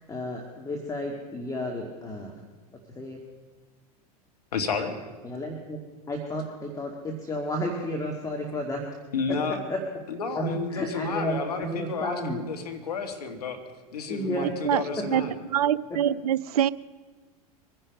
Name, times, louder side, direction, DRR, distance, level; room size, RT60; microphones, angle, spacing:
voice 1, 0.0-2.3 3.0-3.2 5.2-5.8 6.1-8.8 9.7-9.8 10.3-12.4 14.1-14.6, equal, 15° left, 2.1 m, -32 dB
voice 2, 4.5-4.9 9.1-9.6 10.1-13.6 13.9-15.3, left 5 dB, 80° left, 2.1 m, -31 dB
voice 3, 15.5-16.7, right 10 dB, 75° right, 0.5 m, -24 dB
23.5 x 10.5 x 5.3 m
hypercardioid pair, 90°, 20 cm